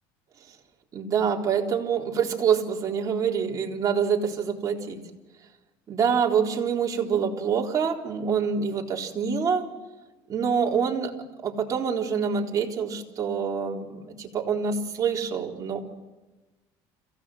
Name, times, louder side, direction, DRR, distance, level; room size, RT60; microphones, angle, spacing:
voice 1, 0.9-5.0 5.9-9.7 10.3-11.1 11.4-15.8, right 6 dB, 35° right, -1 dB, 3.9 m, -26 dB
27.0 x 16.5 x 6.4 m, 1.1 s
cardioid pair, 120°, 10 cm